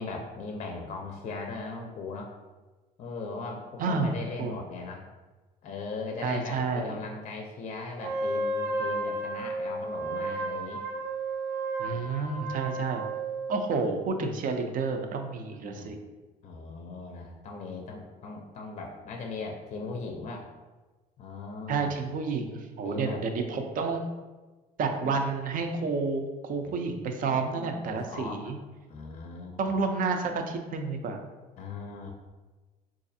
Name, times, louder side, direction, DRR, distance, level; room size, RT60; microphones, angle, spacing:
voice 1, 0.0-2.3 3.0-5.1 5.6-10.8 11.8-12.1 12.7-12.8 15.6-16.0 16.4-20.5 21.2-22.0 22.8-23.2 25.0-25.1 26.6-26.8 27.2-28.5 28.9-29.7 31.6-32.1, left 3 dB, 40° left, 2 dB, 0.5 m, -39 dB
voice 2, 3.8-4.6 6.2-7.0 11.8-13.0 13.5-16.0 21.7-24.0 24.8-28.6 29.6-31.2, right 4 dB, 55° right, 5 dB, 0.5 m, -30 dB
Wind instrument woodwind instrument, 8.0-13.6, right 2 dB, 85° right, 0.8 m, -32 dB
3.9 x 2.5 x 2.6 m, 1.2 s
cardioid pair, 110°, 17 cm